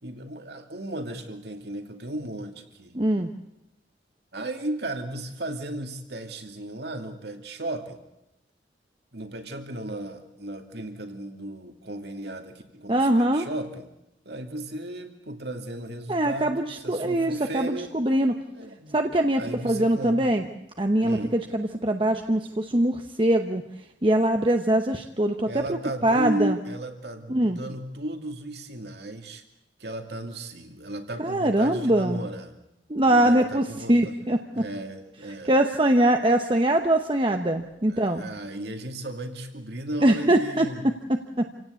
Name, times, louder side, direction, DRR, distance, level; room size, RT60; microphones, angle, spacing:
voice 1, 0.0-2.9 4.3-8.0 9.1-13.9 14.2-17.9 18.5-19.0 19.4-20.2 21.0-21.4 25.5-29.4 29.8-32.6 33.0-34.1 34.5-35.5 37.9-40.9, right 1 dB, 60° right, 5 dB, 2.6 m, -35 dB
voice 2, 2.9-3.3 12.9-13.5 16.1-18.3 18.9-20.5 20.8-23.6 24.0-26.6 27.3-27.6 31.2-32.2 32.9-33.6 33.9-34.4 35.5-38.2 40.0-40.7 41.4-41.5, right 1 dB, 25° right, 5 dB, 1.0 m, -22 dB
28.0 x 17.0 x 8.4 m, 0.90 s
head